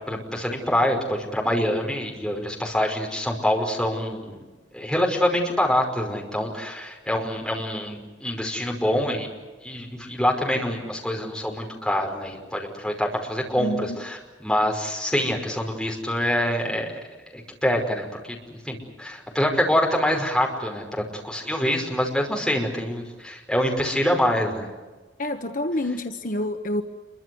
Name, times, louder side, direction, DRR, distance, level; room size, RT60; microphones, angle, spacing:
voice 1, 0.1-4.4 4.7-9.3 9.6-16.9 17.3-24.7, equal, 5° left, 0 dB, 5.5 m, -25 dB
voice 2, 13.6-14.1 25.2-26.8, left 1 dB, 45° left, 6 dB, 1.2 m, -28 dB
28.0 x 24.0 x 8.0 m, 1.3 s
head